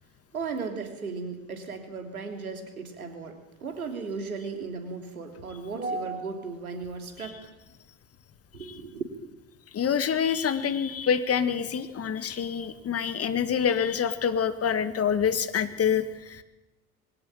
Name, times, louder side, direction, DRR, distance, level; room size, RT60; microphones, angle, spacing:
voice 1, 0.3-7.5 8.5-9.0, right 4 dB, 85° right, 6 dB, 3.1 m, -35 dB
voice 2, 9.7-16.4, left 7 dB, 35° left, 12 dB, 1.9 m, -26 dB
22.5 x 18.0 x 9.0 m, 1.0 s
figure-of-eight pair, 65°, 42 cm